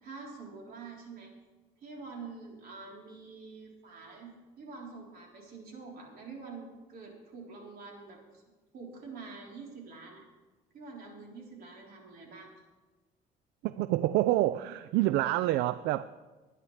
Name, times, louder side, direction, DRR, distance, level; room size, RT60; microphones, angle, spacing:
voice 1, 0.0-1.3 1.8-8.4 8.7-10.2 10.7-12.5, right 4 dB, 60° right, 3.7 m, -46 dB
voice 2, 13.6-16.1, right 15 dB, 85° right, 0.4 m, -27 dB
21.5 x 9.8 x 3.3 m
cardioid pair, 110°, 17 cm